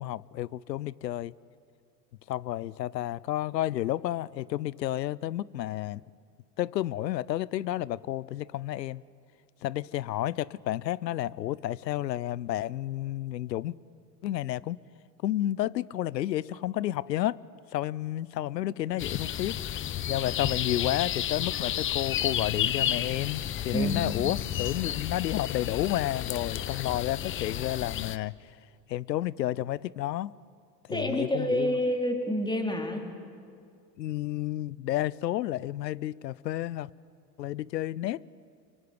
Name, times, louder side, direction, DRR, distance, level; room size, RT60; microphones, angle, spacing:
voice 1, 0.0-1.3 2.3-6.0 6.6-9.0 9.6-13.8 14.2-14.8 15.2-17.4 17.7-19.6 20.1-28.3 28.9-30.3 30.9-31.8 34.0-36.9 37.4-38.2, left 14 dB, 85° left, 0.7 m, -31 dB
sound 1, 19.0-28.2, left 11 dB, 25° left, 0.7 m, -32 dB
voice 2, 23.7-24.0 30.9-33.1, equal, 10° left, 4.2 m, -28 dB
24.5 x 23.5 x 9.7 m
hypercardioid pair, 90°, 49 cm